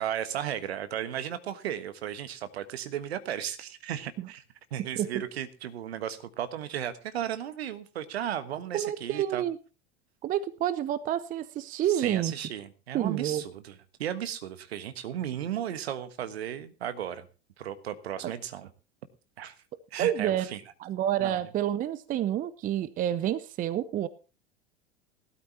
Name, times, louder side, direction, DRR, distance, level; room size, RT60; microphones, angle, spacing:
voice 1, 0.0-4.4 4.7-9.4 11.9-17.3 17.6-18.7 19.4-19.5 19.9-20.6 21.2-21.4, right 10 dB, 65° right, 11 dB, 1.3 m, -35 dB
voice 2, 8.7-9.6 10.2-12.3 12.9-13.4 18.2-18.3 20.0-20.5 20.8-24.1, right 11 dB, 25° right, 17 dB, 0.7 m, -29 dB
19.0 x 12.5 x 2.8 m, 0.32 s
figure-of-eight pair, 85°, 34 cm